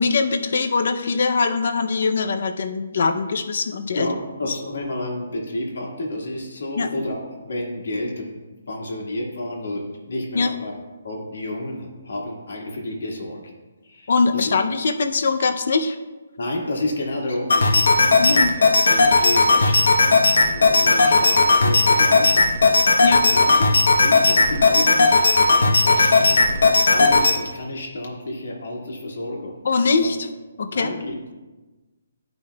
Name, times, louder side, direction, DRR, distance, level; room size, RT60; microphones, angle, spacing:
voice 1, 0.0-4.1 4.4-4.5 6.8-6.9 10.3-10.5 14.1-16.0 18.2-18.5 23.0-23.2 29.6-30.3 30.6-30.9, left 4 dB, 45° left, 8 dB, 0.5 m, -22 dB
voice 2, 3.9-10.7 11.0-13.4 13.8-14.5 16.4-22.5 23.2-26.4 26.9-29.6 30.7-31.3, left 1 dB, 70° left, -1 dB, 1.7 m, -30 dB
sound 1, 17.5-27.3, left 3 dB, 85° left, 1.0 m, -16 dB
12.5 x 5.3 x 2.3 m, 1.2 s
hypercardioid pair, 180°, 0 cm